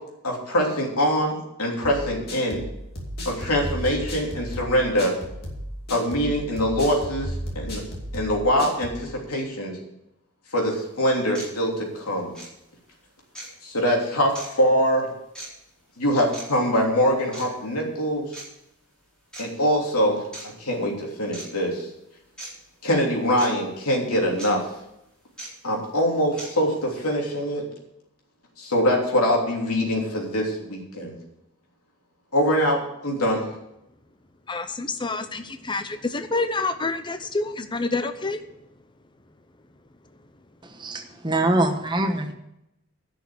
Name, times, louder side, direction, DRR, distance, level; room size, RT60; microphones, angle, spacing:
voice 1, 0.2-2.6 3.2-5.1 5.9-7.8 8.1-9.7 10.5-12.3 13.6-15.1 16.0-18.3 19.4-20.2 20.6-21.9 22.8-24.6 25.6-27.6 28.6-31.2 32.3-33.4, equal, 85° left, -1 dB, 3.2 m, -23 dB
sound 1, 1.8-9.0, equal, 45° left, 2.7 m, -34 dB
sound 2, 10.6-10.7 11.3-11.5 12.3-12.5 13.3-13.5 14.3-14.5 15.3-15.5 16.3-16.4 17.3-17.5 18.3-18.4 19.3-19.4 20.3-20.5 21.3-21.5 22.4-22.5 23.4-23.5 24.4-24.5 25.4-25.5 26.4-26.5, right 1 dB, 5° left, 4.3 m, -37 dB
voice 2, 34.5-38.4, left 3 dB, 20° left, 9 dB, 0.7 m, -28 dB
voice 3, 40.8-42.3, right 2 dB, 20° right, 5 dB, 1.1 m, -23 dB
11.0 x 6.3 x 8.6 m, 0.83 s
head